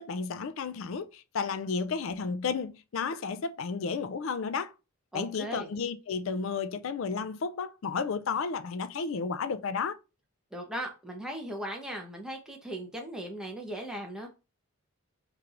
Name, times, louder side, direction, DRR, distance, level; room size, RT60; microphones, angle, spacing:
voice 1, 0.0-4.7 5.1-10.0, left 5 dB, 65° left, 0.4 m, -32 dB
voice 2, 5.1-5.7 10.5-14.3, right 1 dB, 5° right, 0.9 m, -38 dB
4.4 x 3.1 x 2.5 m
head